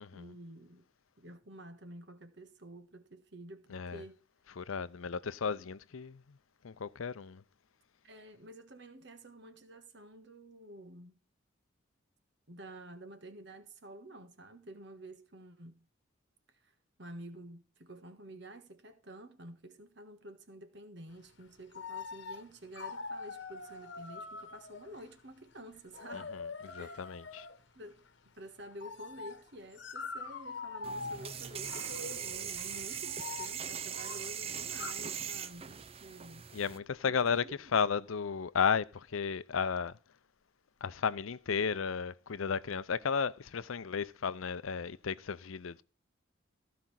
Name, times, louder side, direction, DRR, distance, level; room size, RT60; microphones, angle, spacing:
voice 1, 0.1-0.9 1.2-4.2 8.0-11.2 12.5-15.9 16.6-26.4 26.8-27.1 27.7-28.0 28.4-36.6 37.1-37.7, right 1 dB, 55° right, 1.4 m, -50 dB
voice 2, 4.6-6.2 6.6-7.4 26.1-26.2 26.6-27.5 36.5-37.4 37.7-39.9 40.8-45.8, left 6 dB, 85° left, 0.6 m, -33 dB
sound 1, 21.4-21.5 21.7-22.5 22.7-25.2 25.7-27.6 28.7-34.9, left 4 dB, 60° left, 1.2 m, -44 dB
sound 2, 30.8-36.8, right 8 dB, 30° right, 0.5 m, -40 dB
15.0 x 5.2 x 5.7 m
head